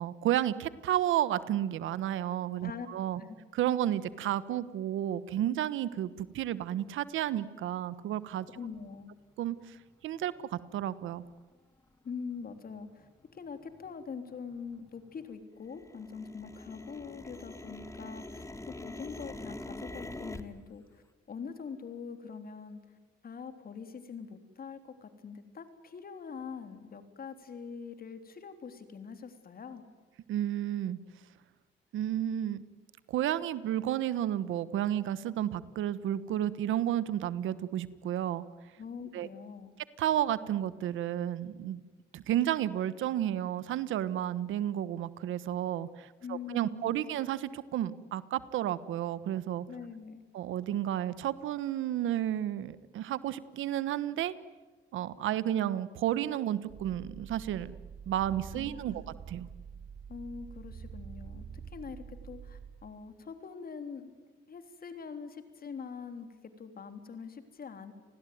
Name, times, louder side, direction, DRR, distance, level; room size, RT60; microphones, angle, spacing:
voice 1, 0.0-3.2 3.5-8.5 9.4-9.8 10.0-11.2 30.3-31.0 31.9-32.6 33.1-38.5 39.1-39.3 40.0-41.8 42.1-49.6 50.3-54.3 54.9-57.7 58.1-59.0 59.3-59.5, right 11 dB, 80° right, 16 dB, 1.3 m, -32 dB
voice 2, 8.5-9.2 12.0-22.8 23.2-29.8 38.8-39.7 46.2-47.1 49.7-50.3 58.5-59.0 60.1-64.1 64.5-66.3 66.6-67.9, left 6 dB, 50° left, 8 dB, 3.5 m, -44 dB
sound 1, 9.6-9.7 10.3-10.4 11.0-11.3 11.8-11.9 12.1-12.7 13.0-15.3 15.6-20.4, left 2 dB, 15° left, 2.0 m, -45 dB
sound 2, 56.7-62.7, right 6 dB, 65° right, 4.7 m, -46 dB
29.5 x 20.0 x 9.5 m, 1.3 s
cardioid pair, 90°, 20 cm